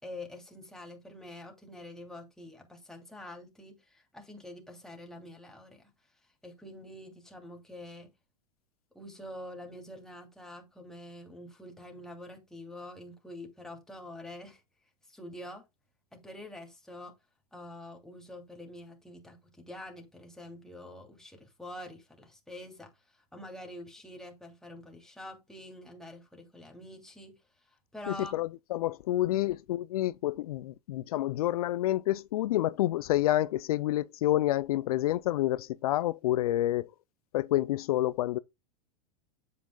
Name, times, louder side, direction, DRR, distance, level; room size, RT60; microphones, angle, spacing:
voice 1, 0.0-5.9 6.4-8.1 8.9-14.6 15.1-15.6 16.1-17.2 17.5-22.9 23.3-27.4 27.9-28.3 29.3-29.5, left 1 dB, 5° left, 2.8 m, -46 dB
voice 2, 28.1-36.9 37.3-38.4, left 14 dB, 75° left, 0.5 m, -28 dB
8.5 x 8.1 x 2.3 m
hypercardioid pair, 105°, 19 cm